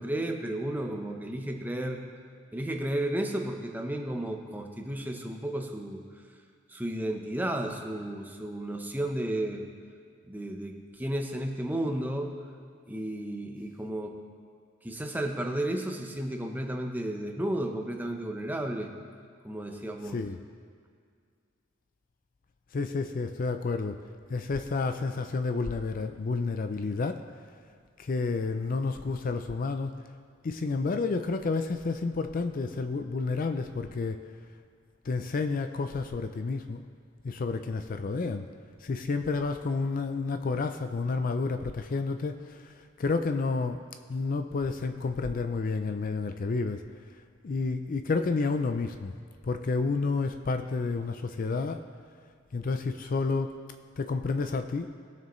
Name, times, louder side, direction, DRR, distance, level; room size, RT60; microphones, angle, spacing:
voice 1, 0.0-2.0 2.5-6.0 6.7-9.6 10.3-12.3 12.9-14.2 14.8-18.9 19.4-20.2, right 1 dB, 10° right, 2 dB, 0.8 m, -33 dB
voice 2, 22.7-24.0 24.3-27.2 28.0-29.9 30.4-34.2 35.1-36.8 37.2-38.5 38.8-43.8 44.1-46.8 47.4-49.1 49.4-51.8 52.5-53.6 54.0-54.9, left 4 dB, 45° left, 8 dB, 0.4 m, -30 dB
20.0 x 6.7 x 3.2 m, 2.1 s
head